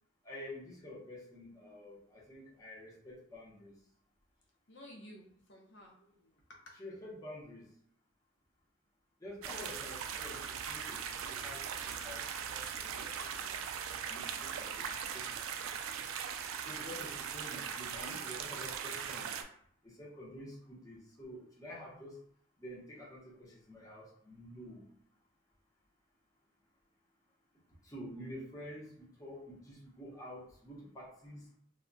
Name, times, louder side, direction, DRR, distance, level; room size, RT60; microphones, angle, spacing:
voice 1, 0.2-3.7 6.8-7.6 9.2-13.5 14.1-15.3 16.6-19.3 19.8-22.2 22.6-24.8 27.8-31.4, left 1 dB, 15° left, -5 dB, 0.8 m, -49 dB
voice 2, 4.7-6.7, left 1 dB, 60° left, -1 dB, 0.5 m, -55 dB
sound 1, 9.4-19.4, right 7 dB, 85° right, 0.3 m, -40 dB
2.2 x 2.1 x 3.8 m, 0.64 s
head